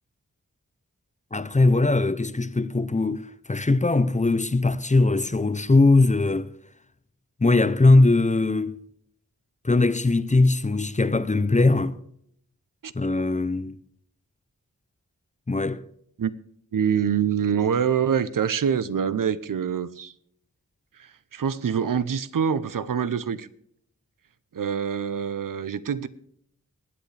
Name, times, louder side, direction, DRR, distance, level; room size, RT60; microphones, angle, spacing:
voice 1, 1.3-6.5 7.4-8.8 9.6-12.0 12.9-13.8 15.5-15.8, left 2 dB, 25° left, 0.6 m, -20 dB
voice 2, 12.8-13.3 16.2-16.3 16.7-20.1 20.9-23.5 24.5-26.1, right 7 dB, 85° right, 0.7 m, -25 dB
21.0 x 9.0 x 3.3 m
wide cardioid pair, 70°, 32 cm